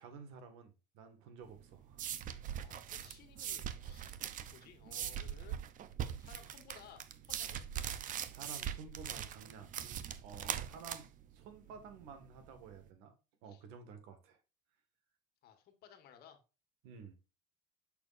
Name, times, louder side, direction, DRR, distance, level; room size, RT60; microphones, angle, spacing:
voice 1, 0.0-2.0 7.9-9.8 10.2-13.1 13.4-14.4 16.8-17.1, right 5 dB, 75° right, 1.9 m, -52 dB
sound 1, 1.4-12.8, right 9 dB, 40° right, 0.7 m, -42 dB
voice 2, 2.6-4.2 4.5-5.6 6.2-7.6 13.5-13.6 15.4-16.4, left 8 dB, 50° left, 1.6 m, -58 dB
6.8 x 6.1 x 2.6 m
supercardioid pair, 125°, 21 cm